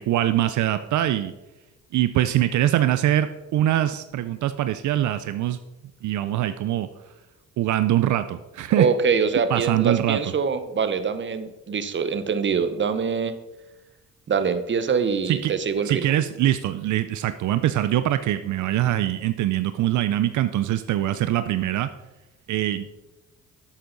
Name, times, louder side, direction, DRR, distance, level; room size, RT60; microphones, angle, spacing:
voice 1, 0.0-1.3 1.9-5.6 6.0-6.9 7.6-8.9 9.5-10.2 15.3-15.5 15.9-21.9 22.5-22.9, right 13 dB, 75° right, 11 dB, 0.6 m, -23 dB
voice 2, 8.7-13.4 14.3-16.1, right 5 dB, 40° right, 11 dB, 1.0 m, -24 dB
11.5 x 8.4 x 4.0 m, 1.0 s
cardioid pair, 90°, 30 cm